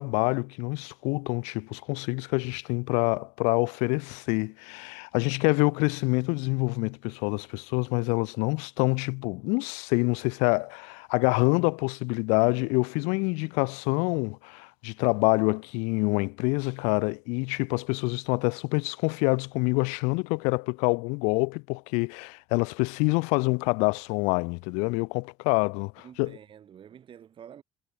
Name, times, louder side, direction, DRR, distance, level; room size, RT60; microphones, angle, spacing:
voice 1, 0.0-26.3, left 32 dB, 90° left, 0.7 m, -26 dB
voice 2, 26.0-27.6, right 9 dB, 50° right, 5.8 m, -48 dB
supercardioid pair, 95°, 11 cm